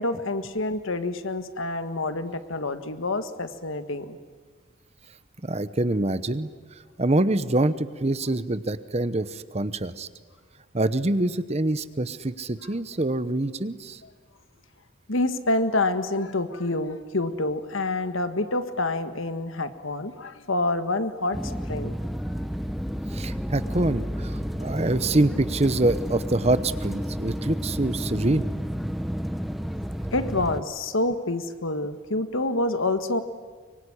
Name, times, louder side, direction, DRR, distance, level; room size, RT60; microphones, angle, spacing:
voice 1, 0.0-4.2 15.1-21.9 30.1-33.2, left 2 dB, 70° left, 10 dB, 1.7 m, -27 dB
voice 2, 5.4-6.5 7.0-10.1 10.7-14.0 23.1-28.5, right 2 dB, 30° right, 14 dB, 0.9 m, -25 dB
sound 1, 21.3-30.6, equal, ahead, 0.8 m, -31 dB
24.0 x 24.0 x 10.0 m, 1.5 s
head